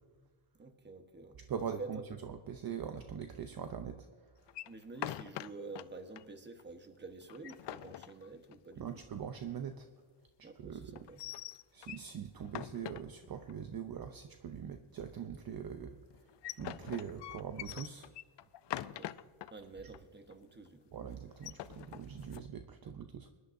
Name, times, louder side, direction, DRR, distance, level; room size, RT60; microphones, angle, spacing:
voice 1, 0.5-2.0 4.6-9.0 10.4-11.2 18.8-19.2 19.5-20.8, right 3 dB, 20° right, 7 dB, 1.2 m, -49 dB
voice 2, 1.5-2.0 2.3-4.1 4.4-4.5 8.8-9.9 10.4-11.1 11.7-16.3 16.6-18.1 20.9-23.3, right 8 dB, 45° right, 7 dB, 0.7 m, -42 dB
sound 1, 4.5-5.8 6.2-6.3 6.6-6.7 7.2-8.7 10.9-12.1 12.4-13.5 16.1-19.5 19.9-20.0 20.3-20.7 21.3-22.5, left 13 dB, 60° left, 0.5 m, -44 dB
21.0 x 11.0 x 2.6 m, 1.5 s
cardioid pair, 115°, 50 cm